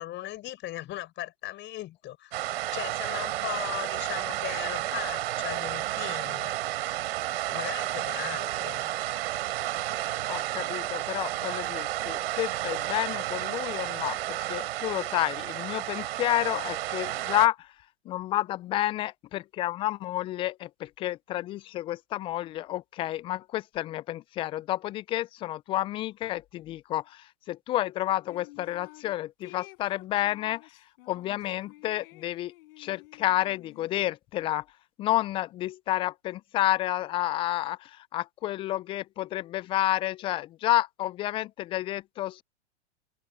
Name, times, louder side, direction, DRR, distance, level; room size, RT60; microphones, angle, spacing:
voice 1, 0.0-6.6 7.5-8.9, left 15 dB, 35° left, 4.3 m, -38 dB
sound 1, 2.3-17.5, right 15 dB, 60° right, 4.0 m, -32 dB
voice 2, 10.3-17.7 18.1-30.6 31.1-34.6 35.0-42.4, left 14 dB, 15° left, 0.3 m, -30 dB
sound 2, 28.3-29.1 29.4-34.1, left 19 dB, 55° left, 6.9 m, -51 dB
hypercardioid pair, 110°, 34 cm